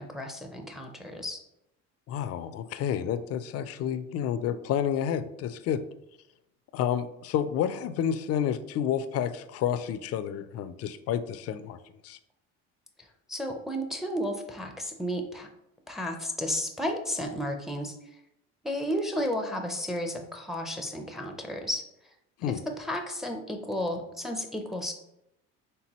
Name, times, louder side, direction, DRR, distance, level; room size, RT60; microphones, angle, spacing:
voice 1, 0.0-1.4 13.0-15.5 15.9-18.0 18.6-21.8 22.7-24.9, equal, ahead, 4 dB, 0.5 m, -33 dB
voice 2, 2.1-5.8 6.7-11.8 12.0-12.2 22.4-22.6, left 9 dB, 50° left, 12 dB, 0.4 m, -30 dB
4.4 x 3.4 x 3.0 m, 0.83 s
cardioid pair, 110°, 31 cm